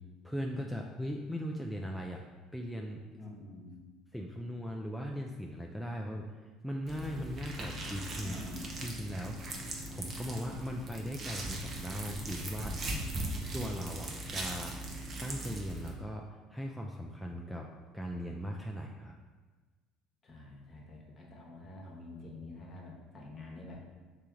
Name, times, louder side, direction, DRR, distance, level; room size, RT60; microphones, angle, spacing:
voice 1, 0.2-2.2 2.5-3.0 4.1-6.3 6.6-8.4 8.8-12.8 13.5-14.8 15.2-16.3 16.5-19.1, equal, ahead, 0 dB, 0.4 m, -39 dB
voice 2, 3.1-3.8 8.2-8.8 13.1-13.4 20.2-23.8, left 2 dB, 40° left, -1 dB, 1.1 m, -48 dB
sound 1, 6.9-15.9, right 1 dB, 40° right, 0.8 m, -39 dB
3.4 x 2.9 x 4.8 m, 1.3 s
hypercardioid pair, 70°, 0 cm